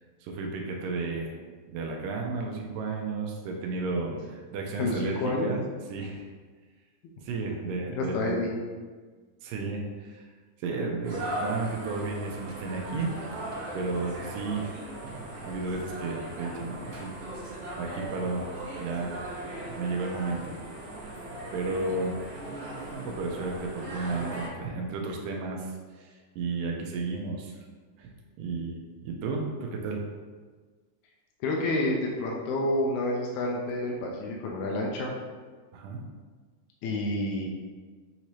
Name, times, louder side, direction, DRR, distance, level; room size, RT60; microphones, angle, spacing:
voice 1, 0.2-1.4 1.7-5.6 5.9-6.3 7.2-8.5 9.4-10.3 10.6-13.4 13.7-17.1 17.8-19.2 19.7-20.6 21.5-22.2 22.9-27.6 28.0-28.1 28.4-28.8 29.0-30.0 35.7-36.0, right 3 dB, 85° right, 0 dB, 2.3 m, -33 dB
voice 2, 4.8-5.5 8.0-8.5 31.4-35.1 36.8-37.5, left 2 dB, 80° left, -2 dB, 1.8 m, -29 dB
sound 1, 11.0-24.5, right 1 dB, 70° right, 2.6 m, -38 dB
6.5 x 2.7 x 3.0 m, 1.4 s
omnidirectional pair, 3.9 m